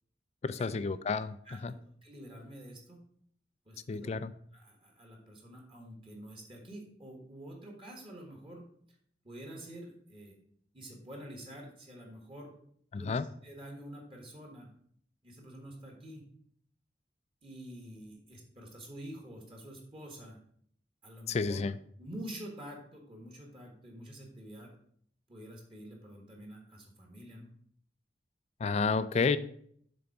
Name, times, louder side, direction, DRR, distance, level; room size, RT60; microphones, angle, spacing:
voice 1, 0.4-1.4 1.6-1.7 3.9-4.3 12.9-13.3 21.3-21.8 28.6-29.4, left 4 dB, 35° left, 14 dB, 0.3 m, -30 dB
voice 2, 2.0-3.0 3.6-4.1 4.5-8.6 9.2-10.4 10.7-12.5 12.9-14.7 15.2-16.2 17.4-20.4 21.0-21.6 22.0-24.7 25.3-27.5, right 1 dB, 30° right, 1 dB, 1.5 m, -47 dB
7.0 x 3.9 x 5.9 m, 0.65 s
head